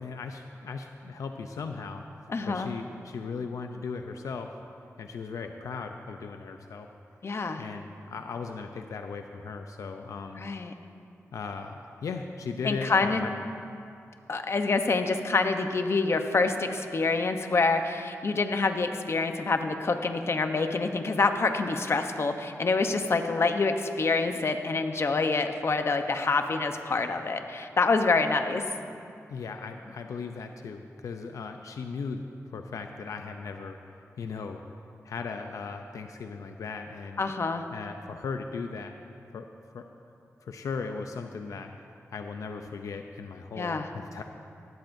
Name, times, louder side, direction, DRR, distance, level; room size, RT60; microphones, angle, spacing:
voice 1, 0.0-2.0 2.4-4.5 5.0-6.9 7.6-10.4 11.3-13.3 29.3-33.8 34.2-34.6 35.0-37.2 37.7-38.9 39.3-39.5 39.7-39.9 40.4-41.7 42.1-44.2, left 5 dB, 90° left, 5 dB, 0.5 m, -37 dB
voice 2, 2.3-2.7 7.2-7.6 10.4-10.7 12.6-13.2 14.3-28.6 37.2-37.6 43.6-43.9, left 3 dB, 55° left, 6 dB, 0.9 m, -26 dB
18.5 x 13.5 x 2.7 m, 2.5 s
cardioid pair, 70°, 5 cm